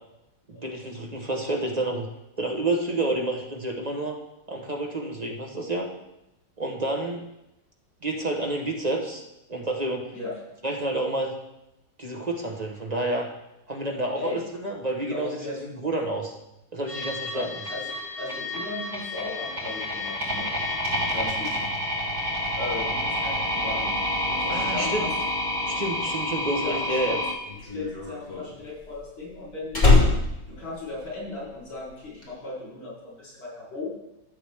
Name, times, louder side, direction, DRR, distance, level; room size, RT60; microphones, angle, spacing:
voice 1, 0.5-2.1 2.4-4.1 4.5-5.9 6.6-7.2 8.0-9.2 9.5-10.1 10.6-11.3 12.0-13.3 13.7-15.4 15.7-16.3 16.7-17.5 24.5-25.1 25.7-27.2, right 2 dB, 30° right, 1 dB, 0.9 m, -29 dB
voice 2, 13.8-14.4 15.1-15.7 17.3-20.5 21.1-21.7 22.6-24.0 24.2-25.1 26.6-27.2 27.6-29.9 30.5-34.0, left 2 dB, 80° left, -6 dB, 4.7 m, -36 dB
sound 1, 16.9-27.3, left 1 dB, 75° right, 4.0 m, -29 dB
Slam, 26.9-31.5 31.8-32.2, left 3 dB, 20° left, 2.4 m, -23 dB
13.5 x 7.9 x 3.5 m, 0.89 s
omnidirectional pair, 2.1 m